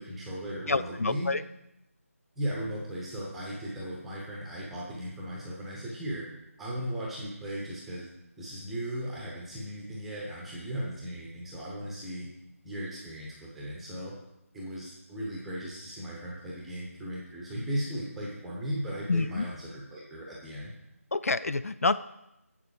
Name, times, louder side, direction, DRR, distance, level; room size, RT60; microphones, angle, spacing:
voice 1, 0.0-1.3 2.4-6.2 6.6-8.1 8.4-12.3 12.6-14.1 14.5-20.7, equal, ahead, -4 dB, 0.9 m, -37 dB
voice 2, 0.7-1.5 19.1-19.5 21.1-22.0, left 3 dB, 70° left, 14 dB, 0.3 m, -27 dB
7.6 x 6.9 x 4.9 m, 0.87 s
figure-of-eight pair, 165°, 8 cm